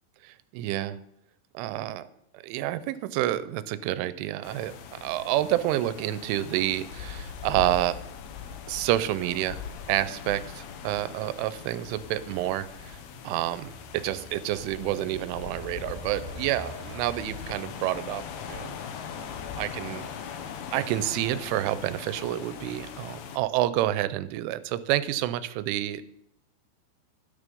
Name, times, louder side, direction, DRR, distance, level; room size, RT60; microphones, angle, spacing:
voice 1, 0.2-1.0 1.5-2.0 2.3-8.0 8.7-9.6 9.9-13.0 13.2-18.2 18.5-18.8 19.2-20.1 20.7-26.0, right 14 dB, 90° right, 14 dB, 3.1 m, -29 dB
sound 1, 4.4-23.4, left 7 dB, 75° left, 2.2 m, -40 dB
Truck, 9.9-17.5, left 1 dB, 35° left, 4.0 m, -47 dB
12.5 x 9.6 x 5.3 m, 0.78 s
omnidirectional pair, 5.5 m